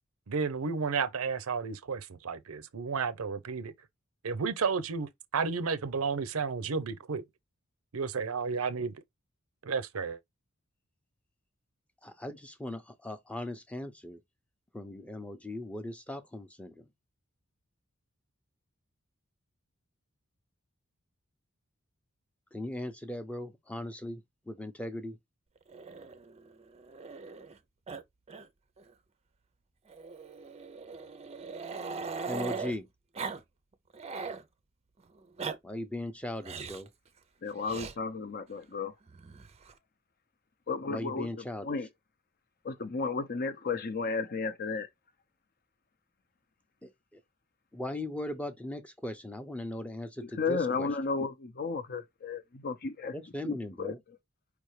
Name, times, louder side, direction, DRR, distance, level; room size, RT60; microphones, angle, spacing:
voice 1, 0.3-3.7 4.2-7.2 7.9-8.9 9.6-10.2, right 5 dB, 80° right, 0.6 m, -32 dB
voice 2, 12.0-14.2 14.7-16.8 22.5-25.2 32.3-32.9 35.6-36.9 40.9-41.8 46.8-47.2 47.7-50.9 53.1-54.0, left 1 dB, 5° left, 0.7 m, -39 dB
Growling, 25.7-27.6 27.9-28.0 28.3-28.5 28.8-28.9 29.9-32.8 33.1-33.4 33.7-34.4 35.1-35.6 36.4-36.9 37.7-37.9 39.1-39.7, right 4 dB, 30° right, 0.5 m, -40 dB
voice 3, 37.4-38.9 40.7-41.9 42.6-44.9 50.2-53.1 53.4-53.9, left 4 dB, 45° left, 0.7 m, -33 dB
4.9 x 3.4 x 3.1 m
head